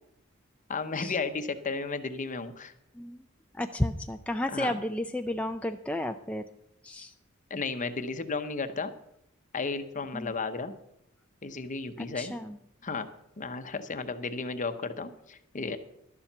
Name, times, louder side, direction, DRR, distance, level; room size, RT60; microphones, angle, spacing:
voice 1, 0.7-2.7 4.5-4.8 7.5-8.9 9.5-10.7 11.4-12.3 12.8-13.1 13.4-15.8, left 4 dB, 35° left, 9 dB, 0.8 m, -33 dB
voice 2, 3.5-6.4 6.8-7.1 10.1-10.3 12.0-12.6, left 1 dB, 5° left, 5 dB, 0.4 m, -32 dB
12.0 x 7.3 x 6.7 m, 0.79 s
head